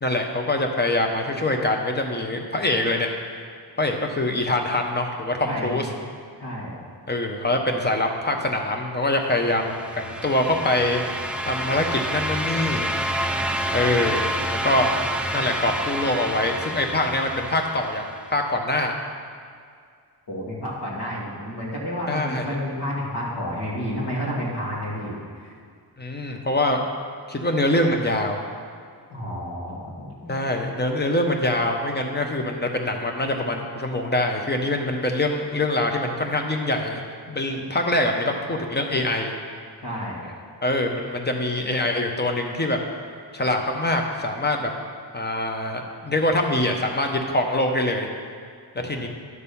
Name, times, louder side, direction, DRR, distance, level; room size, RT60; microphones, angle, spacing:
voice 1, 0.0-3.1 3.8-5.9 7.1-11.0 11.4-12.9 13.7-14.9 15.3-18.0 18.3-18.9 22.1-22.5 26.0-26.8 27.3-28.4 30.3-37.0 37.3-39.3 40.6-42.8 43.3-44.7 45.1-48.1 48.8-49.1, left 1 dB, 25° left, 3 dB, 1.0 m, -24 dB
voice 2, 5.5-5.9 6.4-6.7 20.3-25.5 29.1-30.3 39.8-40.3 48.7-49.1, equal, 65° left, -5 dB, 2.6 m, -30 dB
sound 1, 9.4-18.3, right 1 dB, 5° right, 0.5 m, -28 dB
11.0 x 4.1 x 7.0 m, 2.2 s
wide cardioid pair, 95°, 43 cm